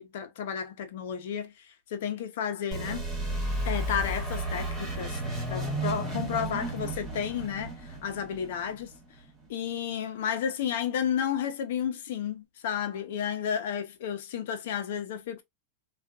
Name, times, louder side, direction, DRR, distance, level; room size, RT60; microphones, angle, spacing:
voice 1, 0.0-1.7 1.9-3.1 3.6-8.9 9.5-15.4, left 8 dB, 70° left, 0.8 m, -32 dB
sound 1, 2.7-9.3, right 1 dB, 10° right, 1.8 m, -33 dB
3.5 x 2.5 x 2.4 m
supercardioid pair, 135°, 0 cm